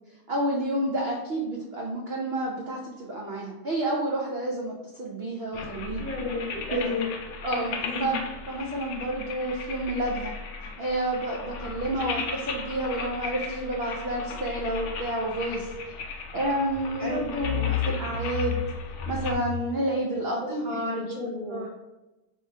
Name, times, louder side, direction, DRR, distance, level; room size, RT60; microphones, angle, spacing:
voice 1, 0.3-6.1 6.7-6.8 7.4-8.2 8.5-10.3 10.6-18.6 19.1-21.7, right 1 dB, 75° right, -2 dB, 0.5 m, -30 dB
sound 1, 5.5-19.3, left 6 dB, 90° left, 0.6 m, -35 dB
voice 2, 6.0-7.2 7.8-8.2 17.0-17.7 18.0-18.1 20.4-21.8, left 3 dB, 40° left, -5 dB, 0.9 m, -33 dB
3.6 x 3.0 x 4.5 m, 1.0 s
omnidirectional pair, 1.8 m